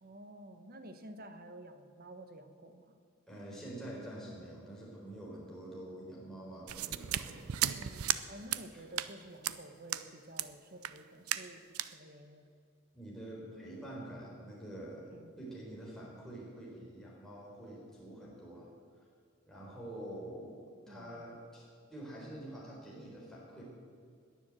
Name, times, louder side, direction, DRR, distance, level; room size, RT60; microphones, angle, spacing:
voice 1, 0.0-3.0 7.7-12.4 15.1-15.4 19.6-20.2 20.9-21.2, right 1 dB, 45° right, 8 dB, 1.1 m, -51 dB
voice 2, 3.3-7.5 8.7-8.8 12.9-15.1 15.4-18.7 19.5-21.6 21.9-23.6, right 1 dB, ahead, -5 dB, 4.0 m, -46 dB
sound 1, 6.7-8.2 8.5-8.6 9.0-9.1 9.4-9.6 9.9-10.0 10.4-10.5 10.8-11.0 11.3-11.5 11.7-11.9, right 12 dB, 90° right, 0.6 m, -34 dB
20.5 x 7.3 x 7.6 m, 2.2 s
head